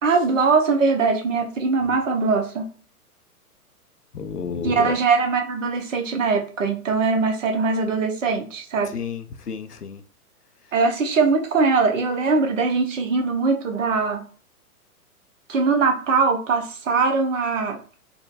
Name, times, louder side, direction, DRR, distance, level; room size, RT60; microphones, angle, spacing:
voice 1, 0.0-2.7 4.6-8.9 10.7-14.2 15.5-17.8, right 4 dB, 55° right, 0.8 m, -21 dB
voice 2, 4.1-5.0 8.8-10.0, left 6 dB, 90° left, 0.6 m, -31 dB
3.8 x 2.2 x 2.3 m
figure-of-eight pair, 110°, 45 cm